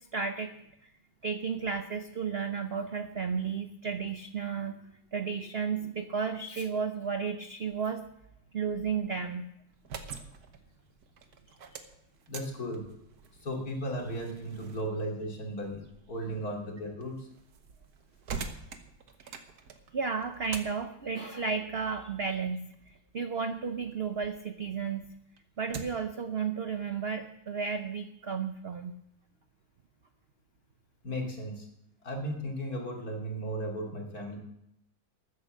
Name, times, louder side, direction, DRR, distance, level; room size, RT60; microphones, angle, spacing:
voice 1, 0.1-0.5 1.2-4.7 5.1-8.0 8.5-9.5 19.2-19.3 19.9-22.7 23.1-25.0 25.6-29.0, right 5 dB, 75° right, 8 dB, 0.5 m, -33 dB
sound 1, 9.7-24.4 24.8-26.2, right 5 dB, 60° right, 1.5 m, -46 dB
voice 2, 12.3-12.8 13.4-17.3 31.0-31.7 32.0-34.4, equal, 50° left, 0 dB, 3.1 m, -35 dB
13.5 x 9.6 x 6.5 m, 0.79 s
omnidirectional pair, 2.1 m